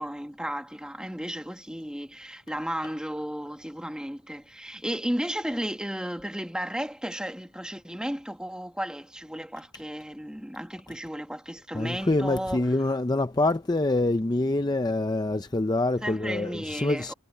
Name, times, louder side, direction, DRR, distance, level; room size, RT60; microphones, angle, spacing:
voice 1, 0.0-12.7 16.0-17.1, equal, 5° right, 1.5 m, -34 dB
voice 2, 11.7-17.1, left 2 dB, 20° left, 0.6 m, -25 dB
head